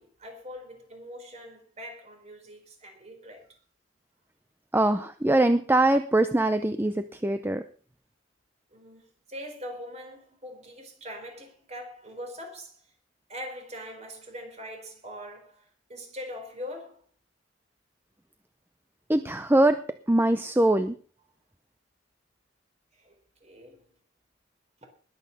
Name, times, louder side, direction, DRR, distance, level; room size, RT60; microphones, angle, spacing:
voice 1, 0.0-3.5 8.7-12.8 13.3-17.0 23.0-24.0 24.8-24.9, equal, 35° right, 4.4 m, -42 dB
voice 2, 4.7-7.6 19.1-19.8 20.1-21.0, right 1 dB, 10° right, 0.5 m, -22 dB
20.0 x 8.4 x 5.5 m
head